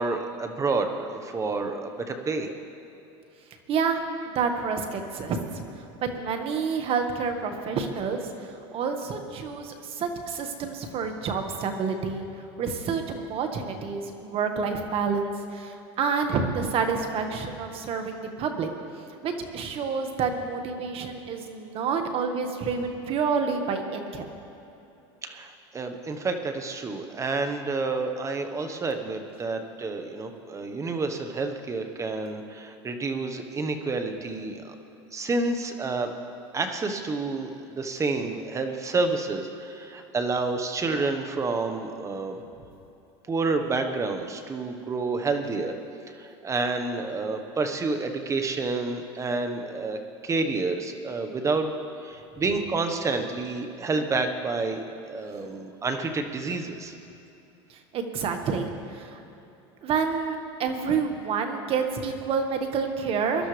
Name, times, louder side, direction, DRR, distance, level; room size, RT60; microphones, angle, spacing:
voice 1, 0.0-2.5 25.2-34.7 35.1-36.1 36.5-42.4 43.3-45.7 46.2-51.7 52.0-56.9, right 3 dB, 20° right, 6 dB, 1.3 m, -29 dB
voice 2, 3.7-12.2 12.6-18.7 19.2-24.3 57.7-59.2 59.8-63.5, right 5 dB, 40° right, 5 dB, 1.7 m, -29 dB
23.0 x 12.0 x 3.4 m, 2.9 s
supercardioid pair, 115°, 14 cm